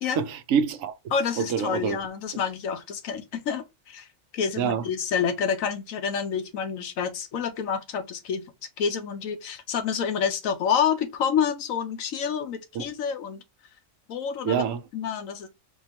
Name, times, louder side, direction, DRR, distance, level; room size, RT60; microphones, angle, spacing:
voice 1, 0.2-0.9 1.4-2.0 4.6-4.8 12.7-12.9 14.4-14.8, right 7 dB, 75° right, 1.0 m, -26 dB
voice 2, 1.1-4.1 4.3-8.4 8.8-13.4 14.1-14.6 14.9-15.5, left 7 dB, 90° left, 1.2 m, -28 dB
4.3 x 3.2 x 2.8 m
omnidirectional pair, 1.4 m